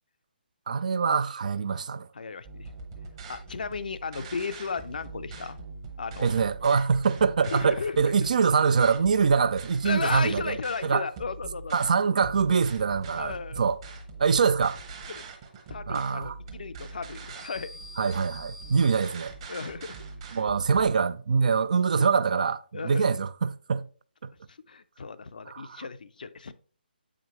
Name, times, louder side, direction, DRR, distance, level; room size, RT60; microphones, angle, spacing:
voice 1, 0.7-2.1 6.2-10.6 10.8-11.1 11.7-13.8 14.2-14.8 15.9-16.4 18.0-19.3 20.3-23.9 24.2-24.3 25.5-25.8, right 5 dB, 45° right, 0.3 m, -24 dB
voice 2, 2.1-2.7 3.3-5.6 6.0-6.4 7.4-8.0 9.8-11.8 13.2-13.6 15.1-15.2 15.7-17.8 18.7-18.8 19.5-20.0 22.0-22.1 22.7-23.1 24.5-26.5, left 5 dB, 55° left, 0.4 m, -35 dB
sound 1, 2.4-20.9, right 3 dB, 30° right, 1.0 m, -43 dB
7.5 x 5.0 x 3.0 m
figure-of-eight pair, 140°, 5 cm